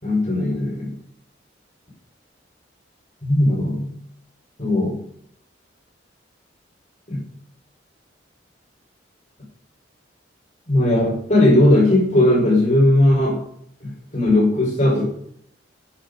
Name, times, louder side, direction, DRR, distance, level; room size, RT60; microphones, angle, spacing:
voice 1, 0.0-0.9 3.2-3.9 4.6-5.0 7.1-7.2 10.7-13.4 13.8-15.0, left 1 dB, 40° left, -3 dB, 4.9 m, -17 dB
10.5 x 8.9 x 5.2 m, 0.65 s
head